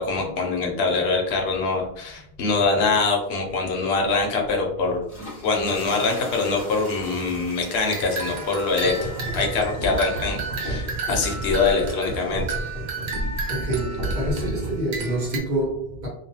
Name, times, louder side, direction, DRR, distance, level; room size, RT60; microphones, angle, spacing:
voice 1, 0.0-5.0 5.4-12.4, left 4 dB, 75° left, 0.9 m, -24 dB
sound 1, 4.9-13.2, equal, 25° left, 0.8 m, -43 dB
sound 2, 7.8-15.4, right 4 dB, 90° right, 0.9 m, -33 dB
sound 3, 8.8-15.0, right 1 dB, 70° right, 0.9 m, -31 dB
voice 2, 13.5-16.1, right 1 dB, 50° right, 1.1 m, -27 dB
2.4 x 2.2 x 2.7 m
omnidirectional pair, 1.1 m